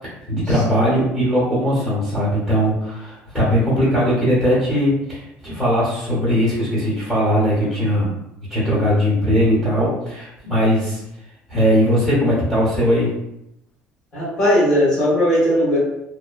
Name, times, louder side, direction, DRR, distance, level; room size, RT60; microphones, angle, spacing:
voice 1, 0.3-8.1 8.5-11.0 11.5-13.1, equal, 10° left, -11 dB, 1.1 m, -19 dB
voice 2, 14.1-15.8, equal, 40° left, -10 dB, 1.5 m, -18 dB
2.8 x 2.1 x 2.3 m, 0.83 s
cardioid pair, 140°, 4 cm